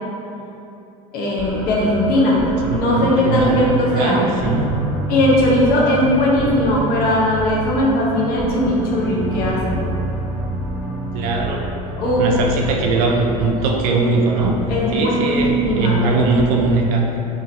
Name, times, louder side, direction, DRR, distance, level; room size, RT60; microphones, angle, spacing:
voice 1, 1.1-2.4 2.7-4.2 5.1-9.9 12.0-12.3 14.7-16.0, left 1 dB, 50° left, -4 dB, 0.8 m, -18 dB
sound 1, 1.4-16.5, right 1 dB, 5° right, 0.9 m, -28 dB
voice 2, 2.6-4.7 6.3-6.5 11.1-11.6 12.0-14.6 14.9-17.2, right 3 dB, 65° right, 1 dB, 0.5 m, -20 dB
2.8 x 2.6 x 2.8 m, 2.9 s
hypercardioid pair, 80°, 20 cm